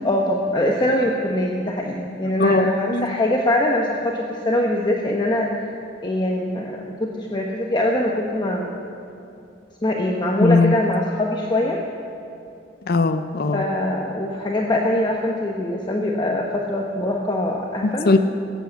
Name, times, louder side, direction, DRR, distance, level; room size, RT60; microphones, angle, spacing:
voice 1, 0.0-5.5 6.0-8.7 9.8-11.8 13.5-18.1, left 1 dB, 25° left, 0 dB, 1.0 m, -23 dB
voice 2, 2.4-3.1 10.4-10.8 12.9-13.7 17.8-18.2, left 3 dB, 55° left, 8 dB, 0.6 m, -19 dB
18.5 x 8.2 x 8.0 m, 2.7 s
head